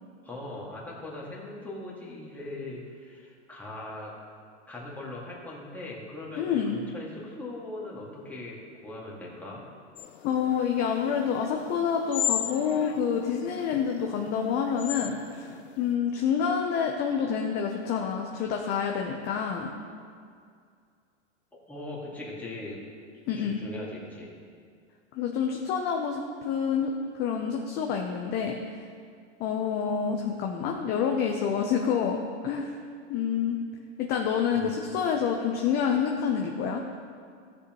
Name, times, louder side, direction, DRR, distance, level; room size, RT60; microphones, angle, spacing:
voice 1, 0.2-4.1 4.7-6.4 6.7-8.6 8.8-9.6 21.7-22.8 23.3-24.3 34.5-34.7, left 2 dB, 5° left, -5 dB, 2.0 m, -40 dB
voice 2, 6.4-6.8 10.2-19.7 23.3-23.6 25.1-28.8 29.4-32.2 32.4-32.8 33.1-33.6 34.0-36.8, left 7 dB, 30° left, 2 dB, 0.7 m, -28 dB
sound 1, 10.0-15.9, left 11 dB, 60° left, 0.8 m, -36 dB
16.0 x 6.7 x 3.1 m, 2.2 s
hypercardioid pair, 140°, 36 cm